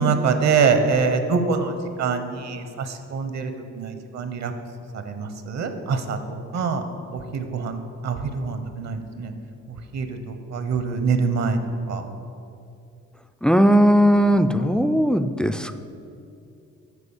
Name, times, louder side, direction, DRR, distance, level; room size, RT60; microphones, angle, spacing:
voice 1, 0.0-3.5 3.8-4.5 4.9-6.2 6.5-6.8 7.1-7.8 8.0-9.3 9.9-11.6 11.9-12.0, right 5 dB, 60° right, 8 dB, 1.0 m, -24 dB
voice 2, 13.4-15.8, equal, 5° left, 10 dB, 0.3 m, -18 dB
8.2 x 5.2 x 7.2 m, 2.6 s
cardioid pair, 90°, 30 cm